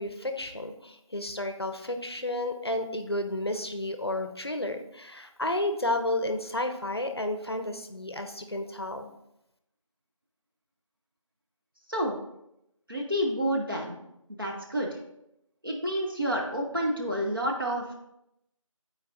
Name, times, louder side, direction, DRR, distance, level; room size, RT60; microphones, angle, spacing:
voice 1, 0.0-9.1, left 1 dB, 50° left, 6 dB, 0.6 m, -32 dB
voice 2, 12.9-14.0 14.3-15.0 15.6-17.9, equal, 40° right, -1 dB, 0.7 m, -29 dB
11.0 x 4.5 x 2.5 m, 0.82 s
figure-of-eight pair, 180°, 17 cm